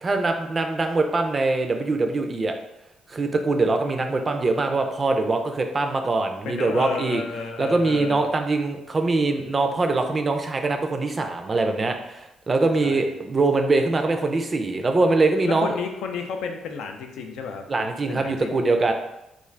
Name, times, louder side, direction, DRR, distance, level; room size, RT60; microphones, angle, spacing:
voice 1, 0.0-2.5 3.1-7.2 7.6-15.8 17.7-18.9, right 3 dB, 35° right, 5 dB, 0.3 m, -23 dB
voice 2, 6.4-8.2 12.8-13.1 15.4-17.6 18.1-18.6, left 5 dB, 80° left, 4 dB, 0.4 m, -32 dB
2.4 x 2.4 x 3.2 m, 0.87 s
cardioid pair, 90°, 0 cm